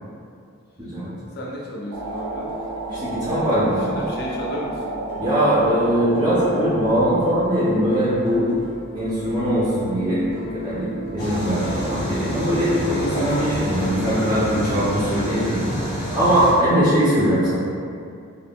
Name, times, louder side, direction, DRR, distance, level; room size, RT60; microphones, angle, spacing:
voice 1, 0.8-1.1 2.9-3.9 5.2-8.6 8.9-10.2 10.5-17.5, equal, 20° right, -11 dB, 0.5 m, -21 dB
voice 2, 1.3-2.5 3.3-5.0, equal, 45° left, -3 dB, 0.4 m, -33 dB
sound 1, 1.9-12.5, equal, 60° right, 0.7 m, -37 dB
sound 2, 1.9-7.2, right 2 dB, 75° right, 0.3 m, -31 dB
sound 3, 11.2-16.5, equal, 20° left, 0.7 m, -27 dB
2.3 x 2.0 x 3.4 m, 2.3 s
head